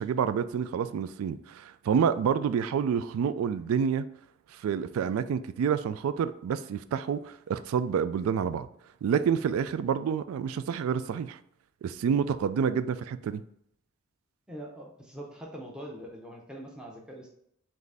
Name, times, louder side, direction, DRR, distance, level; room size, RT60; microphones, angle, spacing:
voice 1, 0.0-4.1 4.6-8.7 9.0-11.4 11.8-13.4, right 7 dB, 85° right, 0.3 m, -28 dB
voice 2, 14.5-17.3, right 1 dB, 5° right, 0.6 m, -43 dB
4.0 x 3.2 x 3.4 m
head